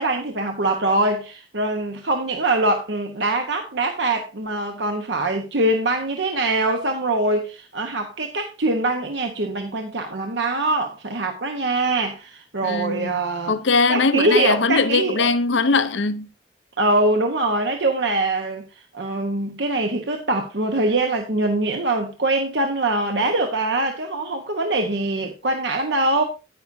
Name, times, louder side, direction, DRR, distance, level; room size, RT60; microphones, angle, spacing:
voice 1, 0.0-13.6 13.9-15.3 16.8-18.7 18.9-26.2, right 2 dB, 75° right, 1.2 m, -23 dB
voice 2, 12.6-13.2 13.5-16.3, left 4 dB, 85° left, 0.7 m, -21 dB
10.0 x 9.6 x 2.7 m
head